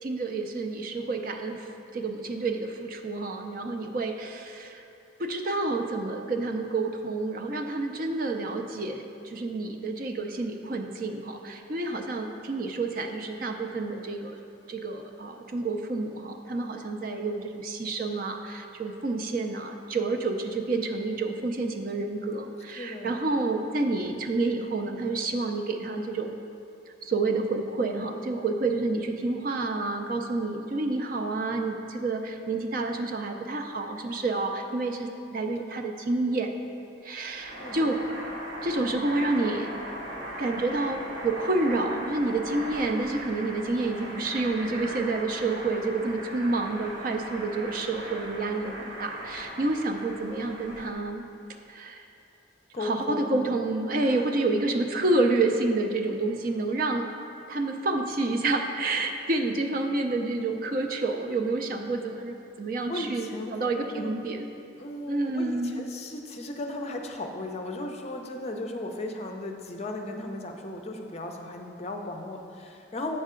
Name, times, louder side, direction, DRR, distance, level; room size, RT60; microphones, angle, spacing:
voice 1, 0.0-1.7 1.9-4.8 5.2-14.4 14.7-26.3 27.0-36.6 37.0-38.0 38.6-39.7 40.4-51.2 51.7-52.0 52.8-57.1 57.5-63.2 63.5-64.5 65.1-65.8, right 2 dB, 50° right, 4 dB, 0.5 m, -29 dB
voice 2, 22.7-23.2 37.6-37.9 52.7-53.5 53.9-54.5 62.9-63.6 63.9-64.2 64.8-73.2, left 1 dB, 35° left, 3 dB, 0.5 m, -36 dB
sound 1, 37.3-50.9, right 1 dB, 80° right, 1.2 m, -39 dB
8.0 x 6.5 x 3.7 m, 2.5 s
head